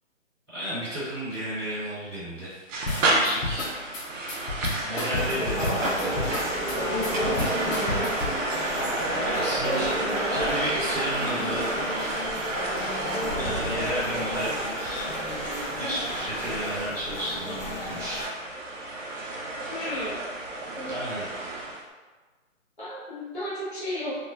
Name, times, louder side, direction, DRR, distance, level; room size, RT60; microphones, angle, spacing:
voice 1, 0.5-2.7 3.0-3.7 4.9-6.3 9.2-9.9 10.3-11.7 13.3-15.1 15.7-18.2 20.9-21.2, equal, 5° right, -23 dB, 0.9 m, -33 dB
sound 1, 2.7-21.8, right 2 dB, 70° right, 0.6 m, -32 dB
sound 2, 2.9-8.4, left 2 dB, 75° left, 0.8 m, -32 dB
sound 3, 5.1-18.3, equal, 20° left, 0.9 m, -31 dB
voice 2, 9.6-10.2 15.8-16.1 19.7-20.2 20.8-21.2 22.8-24.1, equal, 40° left, -10 dB, 0.5 m, -34 dB
2.9 x 2.0 x 2.3 m, 1.3 s
hypercardioid pair, 175°, 40 cm